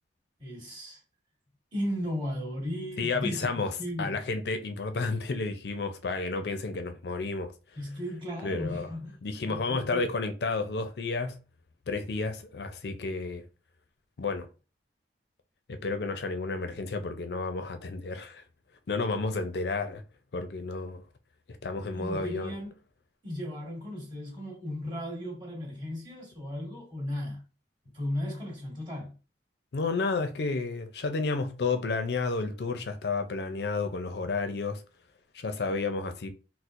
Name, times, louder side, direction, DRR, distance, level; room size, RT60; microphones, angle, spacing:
voice 1, 0.4-1.0 1.7-3.5 3.8-4.2 7.7-10.1 21.9-22.7 23.2-27.4 27.9-29.2, equal, 25° right, 1.7 m, -35 dB
voice 2, 3.0-7.5 8.4-8.9 9.2-11.4 11.9-13.4 14.2-14.5 15.7-18.4 18.9-20.0 20.3-21.0 21.5-22.5 29.7-34.8 35.3-36.3, left 3 dB, 65° left, 0.5 m, -31 dB
4.2 x 2.1 x 2.5 m
head